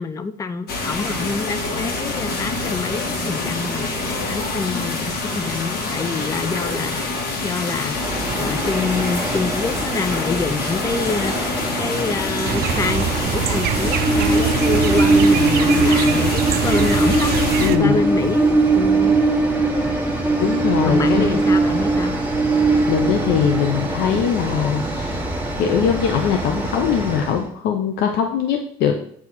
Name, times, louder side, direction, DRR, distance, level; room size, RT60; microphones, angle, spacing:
voice 1, 0.0-3.9 4.3-8.0 8.4-17.4 17.8-19.2 20.8-22.2, left 4 dB, 20° left, 10 dB, 0.5 m, -26 dB
sound 1, 0.7-17.7, left 3 dB, 70° left, 1.5 m, -26 dB
Train, 7.9-27.4, right 2 dB, 10° right, 1.3 m, -21 dB
sound 2, 12.4-17.8, right 10 dB, 65° right, 0.5 m, -24 dB
voice 2, 17.6-18.1 20.4-21.5 22.5-25.2 25.6-29.0, left 8 dB, 85° left, 4 dB, 0.7 m, -21 dB
7.7 x 3.0 x 5.8 m, 0.65 s
cardioid pair, 110°, 17 cm